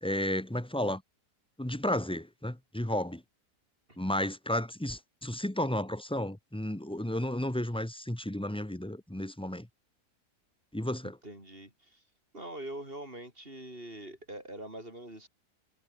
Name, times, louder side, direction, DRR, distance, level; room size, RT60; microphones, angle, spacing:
voice 1, 0.0-1.0 1.6-3.2 4.0-9.7 10.7-11.2, left 1 dB, 5° left, 1.1 m, -33 dB
voice 2, 11.2-12.0 12.3-15.3, right 1 dB, 35° right, 7.9 m, -43 dB
omnidirectional pair, 1.7 m